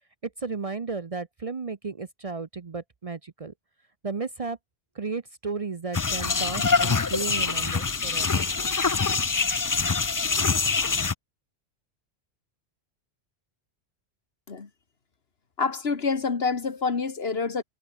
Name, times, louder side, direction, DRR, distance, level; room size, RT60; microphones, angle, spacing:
voice 1, 0.4-3.5 4.0-4.6 4.9-8.4, right 4 dB, 35° right, 0.8 m, -34 dB
sound 1, 5.9-11.1, left 4 dB, 30° left, 0.4 m, -25 dB
voice 2, 15.6-17.6, left 4 dB, 70° left, 2.0 m, -27 dB
omnidirectional pair, 1.1 m